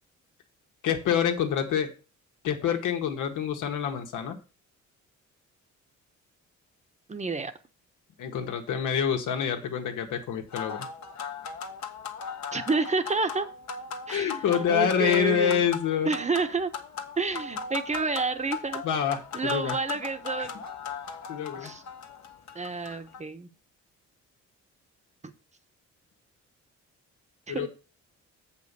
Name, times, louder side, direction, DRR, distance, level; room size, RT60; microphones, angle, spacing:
voice 1, 0.8-1.9 2.4-4.4 8.2-10.9 14.1-16.1 18.8-19.8 21.3-21.8 27.5-27.7, left 8 dB, 85° left, 4 dB, 1.8 m, -27 dB
voice 2, 7.1-7.5 12.5-13.5 14.1-15.7 16.0-16.7 17.2-18.8 19.3-20.6 21.6-21.8 22.5-23.5 25.2-25.3 27.5-27.7, right 4 dB, 25° right, 9 dB, 1.1 m, -29 dB
sound 1, 10.5-23.2, left 6 dB, 65° left, 1.6 m, -38 dB
7.6 x 5.4 x 6.9 m, 0.34 s
cardioid pair, 90°, 30 cm